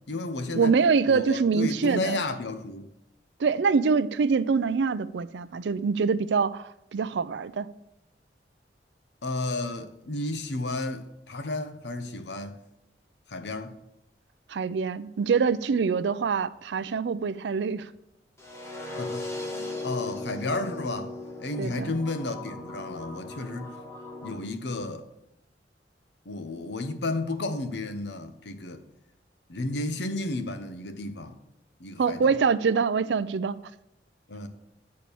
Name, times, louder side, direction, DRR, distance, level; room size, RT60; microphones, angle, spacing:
voice 1, 0.0-0.7 1.1-2.9 9.2-12.6 13.3-13.7 19.0-21.1 21.4-23.8 24.2-25.1 26.2-28.8 29.5-31.4 31.8-32.4 34.3-34.5, left 2 dB, 70° left, 0.9 m, -32 dB
voice 2, 0.5-2.2 3.4-7.7 14.5-17.9 21.6-21.9 32.0-33.5, right 5 dB, 75° right, 0.4 m, -25 dB
sound 1, 18.4-24.4, left 2 dB, 15° left, 1.4 m, -37 dB
8.4 x 4.5 x 6.9 m
head